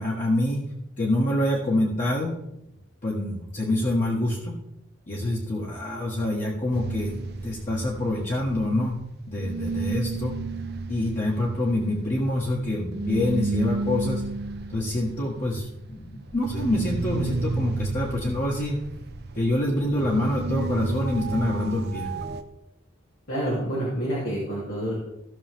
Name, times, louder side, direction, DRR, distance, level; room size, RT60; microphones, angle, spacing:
voice 1, 0.0-2.3 3.0-4.6 5.1-9.0 9.3-10.4 10.9-14.2 14.7-18.8 19.3-22.1, left 1 dB, 40° left, -5 dB, 1.7 m, -26 dB
sound 1, 6.7-9.1 9.3-22.4, right 3 dB, 50° right, 0.8 m, -32 dB
voice 2, 23.3-24.9, right 1 dB, 80° left, -8 dB, 3.3 m, -28 dB
16.0 x 6.4 x 3.7 m, 0.84 s
head